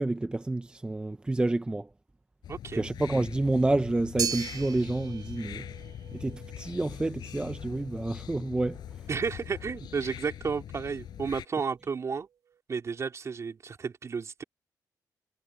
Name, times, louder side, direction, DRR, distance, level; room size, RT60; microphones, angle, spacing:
voice 1, 0.0-1.9 2.7-5.7 6.1-8.8, right 2 dB, 15° right, 0.6 m, -29 dB
sound 1, 2.4-11.4, left 10 dB, 90° left, 8.0 m, -43 dB
voice 2, 2.5-2.8 9.1-12.3 12.7-14.4, right 5 dB, 45° right, 3.7 m, -32 dB
sound 2, 4.2-12.6, right 7 dB, 70° right, 3.7 m, -41 dB
cardioid pair, 110°, 7 cm